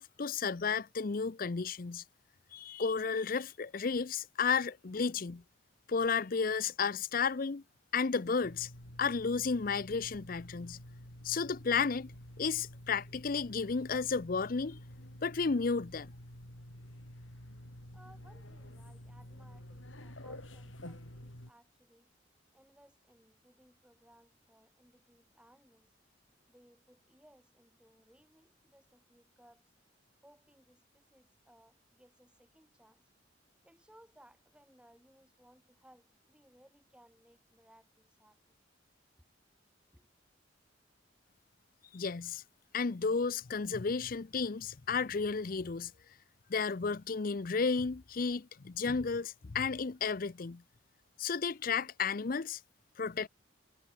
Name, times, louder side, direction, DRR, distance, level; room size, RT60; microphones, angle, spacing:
voice 1, 0.0-2.0 2.5-5.4 5.9-7.6 7.9-8.7 9.0-10.8 11.2-12.1 12.4-14.8 15.2-16.1 41.9-42.4 42.7-45.9 46.5-50.6 51.2-52.6 53.0-53.3, left 5 dB, 45° left, 0.6 m, -33 dB
sound 1, 8.4-21.5, left 1 dB, 80° left, 6.0 m, -50 dB
voice 2, 17.9-22.1 22.5-26.0 26.5-29.7 30.2-33.1 33.6-38.6 39.2-39.3 39.9-40.1, equal, 5° right, 8.0 m, -63 dB
head